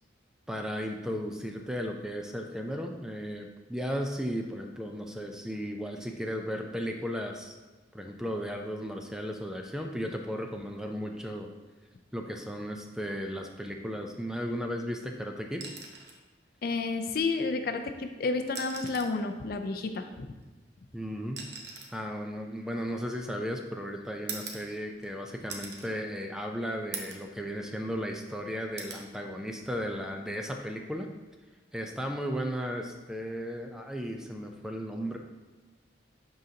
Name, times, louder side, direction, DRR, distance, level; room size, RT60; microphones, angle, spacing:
voice 1, 0.5-7.6 7.9-11.5 12.1-15.6 20.9-21.4 21.9-31.1 31.7-35.2, equal, 5° right, 3 dB, 0.4 m, -35 dB
sound 1, 15.6-16.2 17.7-17.8 18.4-19.2 20.4-23.5 24.3-25.1 25.5-25.9 26.4-26.5 26.9-27.3 27.7-28.4 28.8-29.1 30.6-30.8, right 5 dB, 65° right, 0.8 m, -43 dB
voice 2, 16.6-20.3, left 3 dB, 55° left, 6 dB, 0.4 m, -31 dB
10.5 x 3.9 x 2.8 m, 1.2 s
head